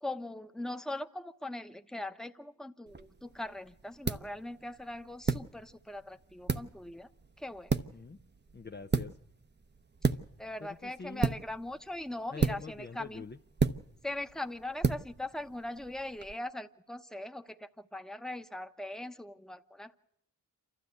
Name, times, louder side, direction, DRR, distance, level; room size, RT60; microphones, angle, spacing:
voice 1, 0.0-7.1 7.4-7.7 10.4-13.2 14.0-20.0, left 1 dB, ahead, 1.0 m, -40 dB
sound 1, 2.9-16.3, right 4 dB, 30° right, 0.9 m, -35 dB
voice 2, 7.8-8.2 8.5-9.2 10.6-11.3 12.3-13.4, left 5 dB, 30° left, 0.7 m, -45 dB
28.0 x 12.5 x 8.1 m
cardioid pair, 45°, 35 cm